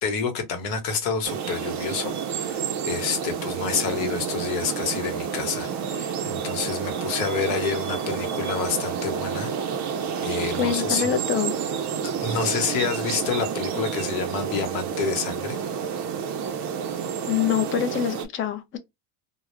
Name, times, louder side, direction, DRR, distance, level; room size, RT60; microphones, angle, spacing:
voice 1, 0.0-9.9 10.2-11.1 12.0-15.6, left 5 dB, 70° left, 1.0 m, -28 dB
sound 1, 1.2-18.3, right 7 dB, 40° right, 0.4 m, -29 dB
voice 2, 10.6-11.5 17.3-18.8, left 10 dB, 30° left, 0.4 m, -25 dB
2.3 x 2.0 x 2.9 m
cardioid pair, 120°, 49 cm